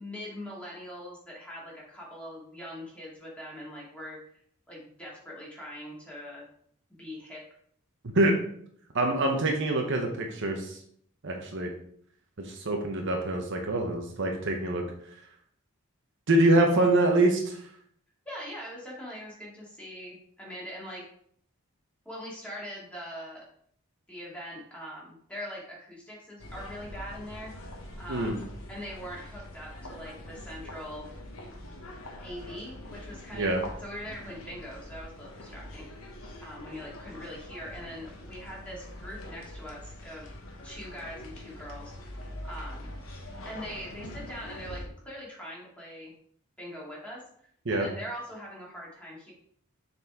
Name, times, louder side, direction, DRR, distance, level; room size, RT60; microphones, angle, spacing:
voice 1, 0.0-4.2 4.7-6.4 7.0-7.4 18.3-21.1 22.1-23.4 24.1-27.5 28.0-31.1 32.2-36.1 36.4-40.3 40.6-41.9 42.4-42.9 43.4-46.1 46.6-49.3, equal, 5° left, -5 dB, 2.1 m, -42 dB
voice 2, 8.0-8.4 8.9-10.8 11.2-11.7 12.4-14.8 16.3-17.6 28.1-28.4 33.3-33.6 47.7-47.9, right 1 dB, 55° right, 2 dB, 0.9 m, -25 dB
sound 1, 26.4-44.9, left 1 dB, 65° left, 1.1 m, -44 dB
6.8 x 4.2 x 3.6 m, 0.63 s
head